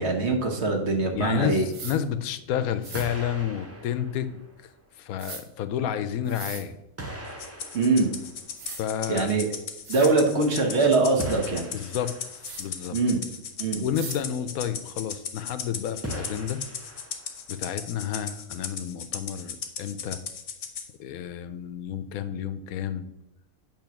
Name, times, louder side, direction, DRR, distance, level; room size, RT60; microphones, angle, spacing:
voice 1, 0.0-1.7 7.7-8.1 9.1-9.4 9.9-11.7 12.9-13.2 13.6-13.8, right 3 dB, 55° right, 2 dB, 1.2 m, -23 dB
voice 2, 1.1-4.7 5.0-6.8 8.8-9.3 11.7-13.0 13.7-16.6 17.5-20.2 21.0-23.0, left 9 dB, 85° left, 12 dB, 1.0 m, -30 dB
sound 1, 1.7-2.0 2.8-3.1 5.2-5.4 6.3-6.6 8.1-8.2 8.6-8.8 9.5-9.6 9.8-10.1 12.4-12.6 13.9-14.2, right 5 dB, 70° right, 1.5 m, -39 dB
sound 2, 2.5-2.7 2.9-5.1 6.1-6.2 7.0-9.2 11.2-12.8 16.0-17.6, right 1 dB, 15° right, 0.6 m, -39 dB
Rattle (instrument), 7.4-20.9, left 6 dB, 60° left, 1.0 m, -37 dB
8.7 x 3.1 x 5.8 m, 0.89 s
omnidirectional pair, 1.5 m